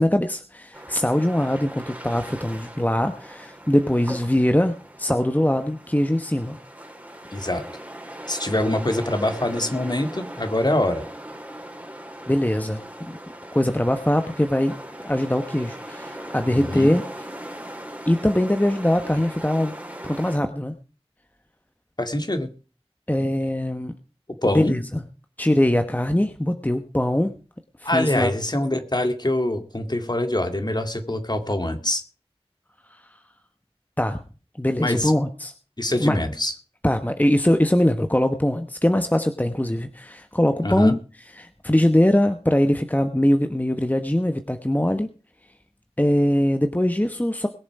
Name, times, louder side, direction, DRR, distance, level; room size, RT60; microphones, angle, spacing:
voice 1, 0.0-6.6 12.3-13.2 13.5-17.0 18.1-19.7 20.0-20.7 23.1-24.0 24.5-25.0 25.4-27.3 27.8-28.3 34.0-34.2 34.6-35.5 36.0-36.2 36.8-45.1 46.0-47.5, left 1 dB, 15° left, 8 dB, 1.2 m, -22 dB
sound 1, 0.7-20.4, right 1 dB, 15° right, 3.5 m, -39 dB
voice 2, 7.3-7.6 8.3-11.0 16.5-16.9 22.0-22.5 24.4-24.7 27.8-32.0 34.8-35.1 35.8-36.5 40.6-40.9, left 1 dB, 45° left, 7 dB, 2.4 m, -24 dB
21.5 x 7.3 x 4.8 m, 0.36 s
wide cardioid pair, 40°, 10 cm